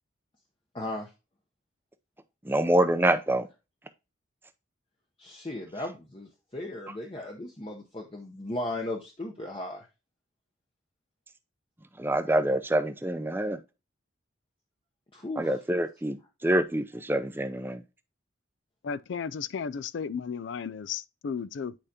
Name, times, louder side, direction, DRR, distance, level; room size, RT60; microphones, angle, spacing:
voice 1, 0.7-1.1 5.2-9.9 15.1-15.5, left 1 dB, 25° left, 0.8 m, -36 dB
voice 2, 2.4-3.5 12.0-13.6 15.4-17.8, right 1 dB, 10° right, 0.5 m, -26 dB
voice 3, 18.8-21.7, left 6 dB, 65° left, 0.4 m, -34 dB
8.8 x 4.9 x 2.8 m
head